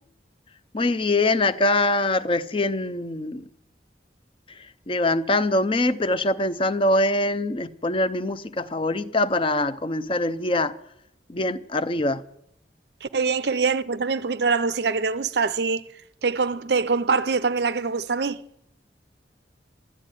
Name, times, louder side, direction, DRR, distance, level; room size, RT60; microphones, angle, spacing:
voice 1, 0.7-3.4 4.9-10.7 11.3-12.2, left 2 dB, 30° left, 0.6 m, -23 dB
voice 2, 13.0-15.8 16.2-18.4, right 4 dB, 65° right, 0.6 m, -24 dB
12.0 x 12.0 x 9.1 m
head